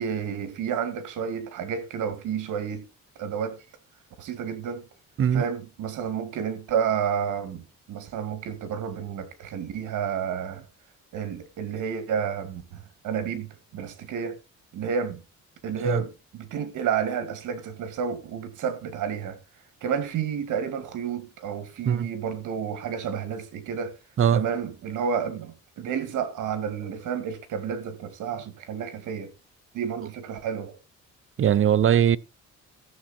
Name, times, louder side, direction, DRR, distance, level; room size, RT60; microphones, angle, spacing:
voice 1, 0.0-2.8 3.2-3.6 4.2-4.9 5.3-10.7 11.1-14.4 14.7-15.2 15.6-19.4 19.8-23.9 24.3-29.3 29.7-30.8, right 7 dB, 80° right, 2.2 m, -30 dB
voice 2, 31.4-32.2, right 9 dB, 45° right, 0.7 m, -20 dB
14.5 x 7.3 x 4.3 m
cardioid pair, 90°, 30 cm